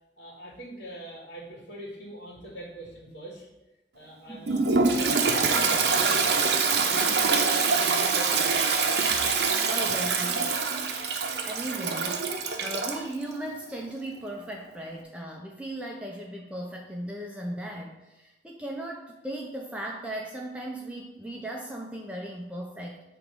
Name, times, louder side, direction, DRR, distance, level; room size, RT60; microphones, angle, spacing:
voice 1, 0.2-3.5 3.9-8.7, right 1 dB, 75° left, -5 dB, 1.6 m, -42 dB
voice 2, 4.3-4.6 9.7-10.6 11.5-23.0, right 1 dB, 5° right, -1 dB, 0.4 m, -37 dB
Toilet flush, 4.5-13.0, right 4 dB, 70° right, 0.6 m, -25 dB
6.0 x 3.0 x 5.3 m, 1.0 s
head